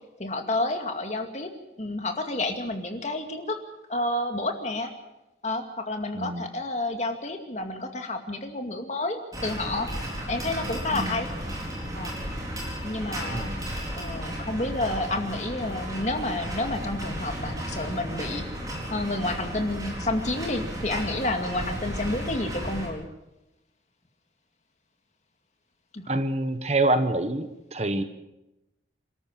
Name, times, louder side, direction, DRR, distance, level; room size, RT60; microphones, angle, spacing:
voice 1, 0.2-1.5 1.8-3.6 3.9-4.9 5.4-9.9 10.3-11.3 11.9-12.1 12.8-13.5 14.0-18.4 18.9-23.1 25.9-26.1, left 2 dB, 40° left, 4 dB, 2.3 m, -30 dB
sound 1, 9.3-22.9, equal, 20° right, 4.8 m, -34 dB
voice 2, 13.3-13.7 26.1-28.0, right 2 dB, 35° right, 9 dB, 1.1 m, -26 dB
28.0 x 13.0 x 7.5 m, 0.96 s
head